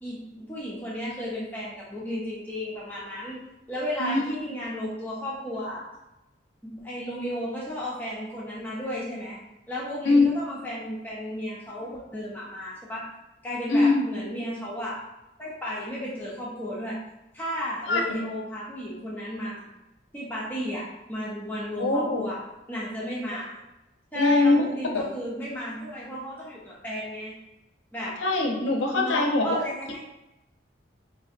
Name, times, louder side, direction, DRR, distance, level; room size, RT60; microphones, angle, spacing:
voice 1, 0.0-3.4 3.7-5.9 6.6-9.4 9.7-13.1 13.4-15.0 15.4-17.0 17.3-19.7 20.1-22.4 22.7-23.5 24.1-27.4 27.9-28.2 28.9-30.0, equal, 10° left, -6 dB, 0.6 m, -33 dB
voice 2, 13.7-14.0 17.9-18.0 21.8-22.2 24.1-24.6 24.9-25.0 28.2-29.5, left 3 dB, 75° left, 2 dB, 0.5 m, -22 dB
3.9 x 2.6 x 2.4 m, 0.94 s
head